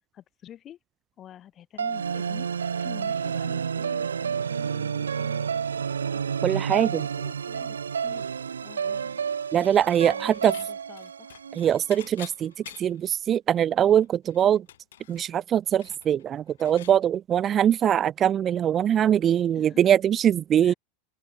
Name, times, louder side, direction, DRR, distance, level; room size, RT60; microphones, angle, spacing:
voice 1, 0.1-0.8 1.2-2.5 2.8-5.5 5.8-6.2 6.9-8.3 8.6-9.2 10.0-11.3 19.5-19.8 20.6-20.8, left 11 dB, 35° left, 2.8 m, -48 dB
sound 1, 1.8-12.1, right 7 dB, 90° right, 1.3 m, -30 dB
voice 2, 6.4-7.0 9.5-10.5 11.6-12.5 12.8-14.6 15.1-20.7, right 10 dB, 35° right, 0.5 m, -22 dB
Dishes pots and pans / Chink clink, 9.9-10.7 11.0-13.1 13.5-13.6 13.9-17.0, left 12 dB, 75° left, 3.8 m, -47 dB
open air
hypercardioid pair, 95°, 0 cm